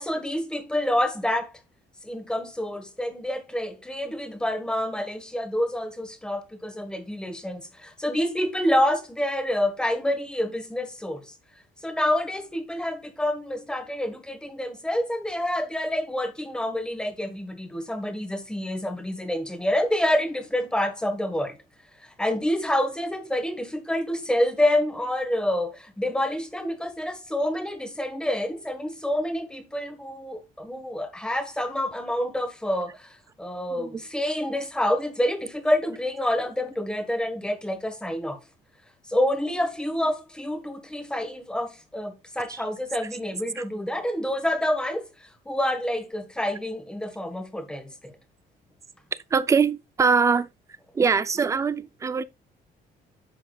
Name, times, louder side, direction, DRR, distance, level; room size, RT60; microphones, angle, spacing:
voice 1, 0.0-1.6 2.0-11.3 11.8-21.6 22.0-38.4 39.1-48.1, left 1 dB, 5° left, 1.4 m, -27 dB
voice 2, 49.3-50.5 50.9-52.2, right 5 dB, 20° right, 0.4 m, -22 dB
10.5 x 7.2 x 2.3 m
cardioid pair, 170°, 17 cm